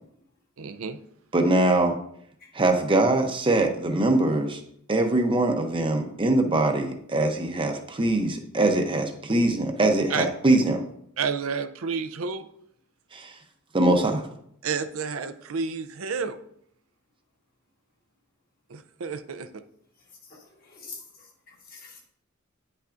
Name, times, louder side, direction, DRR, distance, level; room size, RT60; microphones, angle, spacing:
voice 1, 0.6-1.0 10.1-10.3 11.2-12.5 14.6-16.4 18.7-19.6, right 5 dB, 75° right, 10 dB, 0.5 m, -30 dB
voice 2, 1.3-2.0 2.5-4.6 4.9-10.8 13.1-13.3 13.7-14.3, right 2 dB, 25° right, 4 dB, 0.7 m, -22 dB
voice 3, 20.0-22.0, left 4 dB, 45° left, -1 dB, 1.5 m, -47 dB
9.2 x 5.7 x 2.5 m, 0.70 s
head